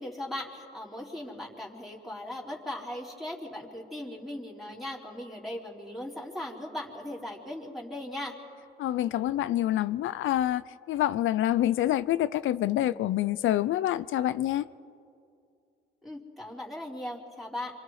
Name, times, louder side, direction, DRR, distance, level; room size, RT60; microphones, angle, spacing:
voice 1, 0.0-8.3 16.0-17.7, left 1 dB, ahead, 4.1 m, -38 dB
voice 2, 8.8-10.6 10.9-14.6, left 13 dB, 80° left, 0.7 m, -27 dB
28.0 x 26.0 x 4.9 m
cardioid pair, 90°, 20 cm